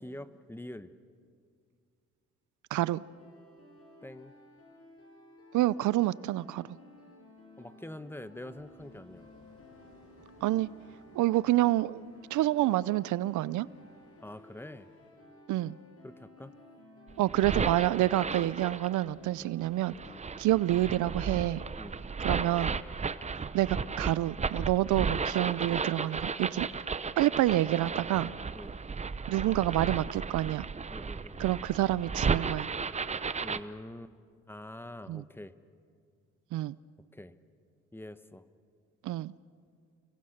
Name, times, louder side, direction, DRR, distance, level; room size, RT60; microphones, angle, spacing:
voice 1, 0.0-0.9 4.0-4.3 7.6-9.3 14.2-14.9 16.0-16.5 19.4-19.5 20.0-20.2 21.8-22.0 28.5-28.8 30.9-31.4 33.4-34.1 34.5-35.5 37.1-37.3 37.9-38.5, left 1 dB, 5° left, 12 dB, 1.0 m, -45 dB
voice 2, 2.7-3.0 5.5-6.8 10.4-10.7 11.1-13.7 15.5-15.8 17.2-19.9 20.4-21.6 22.2-22.7 23.5-26.7 27.2-28.3 29.3-30.7 31.4-32.7 35.1-35.2 36.5-36.8 39.0-39.3, right 15 dB, 75° right, 20 dB, 0.5 m, -28 dB
sound 1, 2.9-21.5, left 2 dB, 50° left, 6.4 m, -55 dB
sound 2, 8.3-15.1, left 2 dB, 70° left, 5.6 m, -62 dB
sound 3, 17.1-19.1 19.8-33.6, right 5 dB, 25° right, 0.7 m, -34 dB
30.0 x 23.5 x 6.6 m, 2.2 s
cardioid pair, 90°, 30 cm